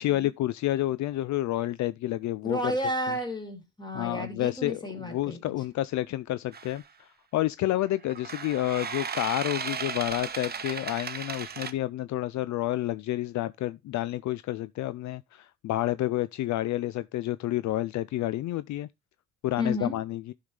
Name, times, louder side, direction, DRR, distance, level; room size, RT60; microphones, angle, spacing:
voice 1, 0.0-2.7 3.9-18.9 19.4-20.3, left 15 dB, 70° left, 0.4 m, -29 dB
voice 2, 2.4-5.5 19.6-19.9, equal, 15° left, 3.1 m, -32 dB
sound 1, 6.5-6.8 8.1-11.7, right 6 dB, 30° right, 0.9 m, -35 dB
12.0 x 5.7 x 3.3 m
cardioid pair, 90°, 30 cm